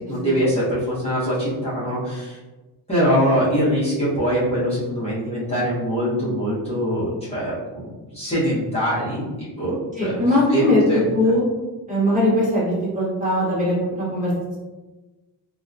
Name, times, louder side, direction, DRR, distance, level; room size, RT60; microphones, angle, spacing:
voice 1, 0.1-2.4 2.9-9.3 9.6-9.8 10.0-10.2 10.5-11.1, equal, 15° left, -11 dB, 0.9 m, -23 dB
voice 2, 9.9-10.8 11.1-11.4 11.9-14.3, left 1 dB, 20° right, -8 dB, 1.2 m, -20 dB
2.8 x 2.1 x 2.4 m, 1.2 s
cardioid pair, 100°, 42 cm